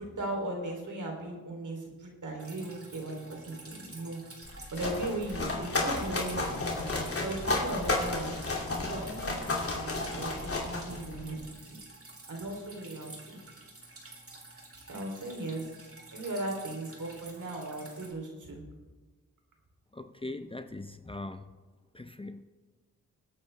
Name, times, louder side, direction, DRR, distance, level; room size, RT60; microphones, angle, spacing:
voice 1, 0.0-4.2 4.7-6.9 7.2-8.3 8.8-11.8 12.3-13.4 14.9-15.7 16.1-18.6, right 2 dB, 65° right, 1 dB, 3.2 m, -38 dB
Drip, 2.4-18.1, right 2 dB, 45° right, 2.6 m, -50 dB
sound 1, 4.4-11.4, left 2 dB, 45° left, 2.7 m, -33 dB
voice 2, 19.9-21.4 21.9-22.4, left 2 dB, 15° left, 9 dB, 0.6 m, -40 dB
22.0 x 8.8 x 3.4 m, 1.3 s
cardioid pair, 65°, 33 cm